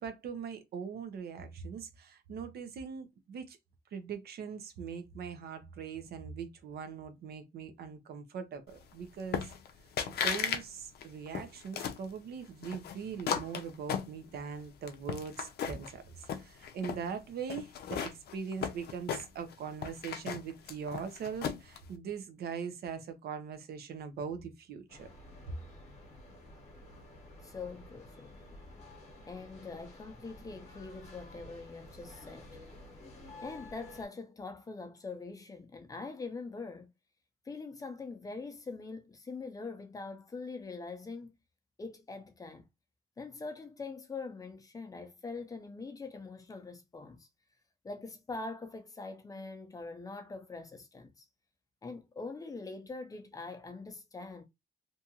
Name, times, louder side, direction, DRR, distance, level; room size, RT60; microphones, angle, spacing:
voice 1, 0.0-3.6 3.9-9.5 10.1-25.1, right 6 dB, 75° right, 0.6 m, -41 dB
sound 1, 9.3-9.7 10.0-10.6 10.9-12.0 12.6-14.5 14.9-15.9 16.2-17.0 17.5-19.5 19.8-21.8, left 7 dB, 80° left, 0.4 m, -35 dB
sound 2, 24.9-34.0, left 1 dB, 40° left, 0.9 m, -51 dB
voice 2, 27.4-28.3 29.3-32.6 33.4-36.9 37.5-41.3 41.8-42.6 43.2-47.3 47.8-51.2 51.8-54.4, left 3 dB, 20° left, 0.5 m, -43 dB
2.7 x 2.3 x 2.7 m
wide cardioid pair, 170°, 16 cm